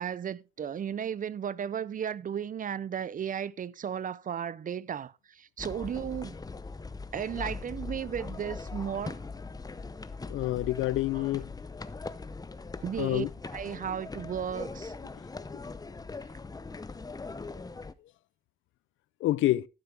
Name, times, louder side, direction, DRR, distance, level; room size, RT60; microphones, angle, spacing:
voice 1, 0.0-6.3 7.1-9.2 11.1-11.3 12.8-13.3 13.5-14.9, right 8 dB, 45° right, 0.6 m, -34 dB
sound 1, 5.6-17.9, left 3 dB, 20° left, 0.8 m, -41 dB
voice 2, 10.3-11.5 13.0-13.3 19.2-19.7, left 15 dB, 80° left, 0.5 m, -27 dB
11.5 x 9.4 x 3.5 m
cardioid pair, 90°, 20 cm